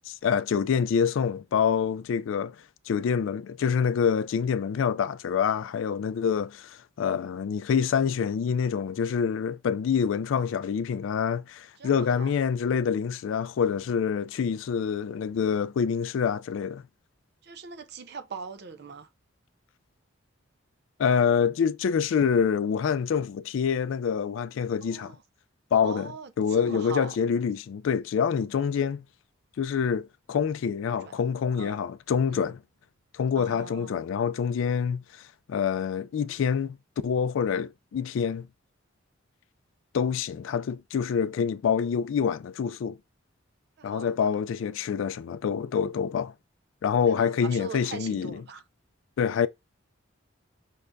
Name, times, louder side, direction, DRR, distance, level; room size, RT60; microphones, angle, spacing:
voice 1, 0.1-2.6 2.9-16.8 21.0-25.1 25.7-26.1 26.4-29.0 29.6-32.6 33.1-35.0 35.5-36.8 37.0-38.5 39.9-43.0 43.8-46.3 46.8-48.4 49.2-49.5, left 7 dB, 70° left, 0.3 m, -26 dB
voice 2, 11.8-12.3 17.4-19.1 24.8-25.2 25.8-27.2 30.8-31.2 31.6-31.8 32.3-32.5 33.3-34.0 43.8-44.2 47.1-48.6, right 4 dB, 50° right, 0.5 m, -41 dB
5.5 x 3.3 x 2.5 m
head